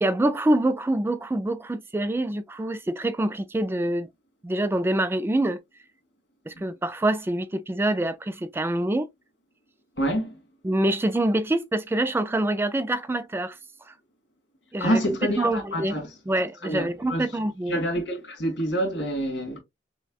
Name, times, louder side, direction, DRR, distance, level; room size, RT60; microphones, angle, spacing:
voice 1, 0.0-4.1 4.4-5.6 6.5-9.1 10.6-13.6 13.9-14.0 14.7-16.0 16.3-17.8, right 1 dB, 15° right, 0.3 m, -25 dB
voice 2, 10.0-10.3 14.8-16.1 16.6-17.2 17.7-19.6, equal, 80° left, 2.1 m, -27 dB
5.9 x 2.2 x 2.3 m
head